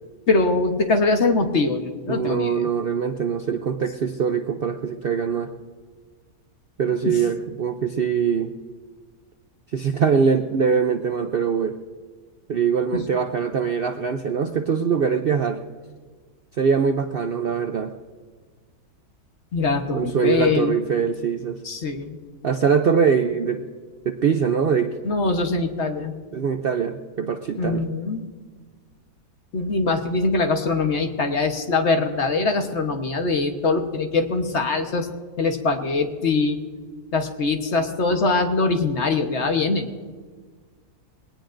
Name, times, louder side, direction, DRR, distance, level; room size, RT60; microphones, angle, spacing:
voice 1, 0.3-2.6 12.9-13.0 19.5-20.8 21.6-22.2 25.0-26.1 27.6-28.2 29.5-35.1 35.4-36.6 37.1-39.9, left 3 dB, 50° left, 6 dB, 1.3 m, -22 dB
voice 2, 2.1-5.5 6.8-8.5 9.7-11.8 12.5-15.6 16.6-17.9 19.9-21.6 22.4-23.6 24.1-24.9 26.3-27.9, right 6 dB, 55° right, 7 dB, 0.6 m, -22 dB
21.0 x 18.0 x 2.6 m, 1.5 s
omnidirectional pair, 1.6 m